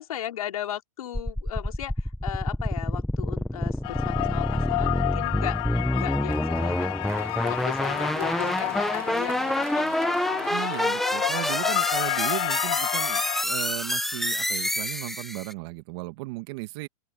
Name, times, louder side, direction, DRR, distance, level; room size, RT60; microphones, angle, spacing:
voice 1, 0.0-6.9 7.4-10.6 11.1-11.6 12.6-13.0, left 11 dB, 80° left, 3.6 m, -37 dB
sound 1, 1.1-15.5, left 1 dB, ahead, 0.9 m, -27 dB
sound 2, 3.8-13.4, left 24 dB, 25° left, 0.4 m, -31 dB
Applause, 6.0-13.1, right 7 dB, 15° right, 1.8 m, -45 dB
voice 2, 10.5-16.9, right 21 dB, 45° right, 2.0 m, -36 dB
open air
supercardioid pair, 155°, 18 cm